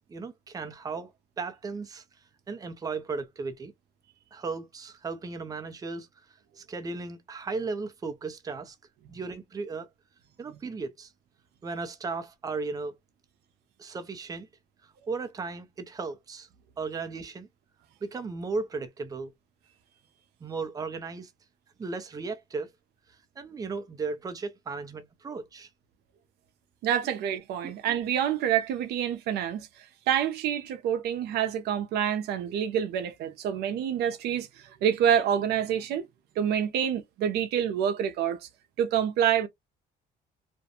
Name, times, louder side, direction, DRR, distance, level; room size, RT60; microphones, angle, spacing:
voice 1, 0.1-2.0 2.5-3.7 4.3-6.1 6.6-8.8 9.1-9.9 10.4-11.1 11.6-13.0 13.8-14.5 15.1-16.5 16.8-17.5 18.0-19.3 20.4-21.3 21.8-22.7 23.4-25.7 27.6-27.7, right 4 dB, 20° right, 0.5 m, -35 dB
voice 2, 26.8-36.1 36.4-38.5 38.8-39.5, right 9 dB, 75° right, 0.5 m, -27 dB
2.5 x 2.1 x 2.7 m
cardioid pair, 110°, 17 cm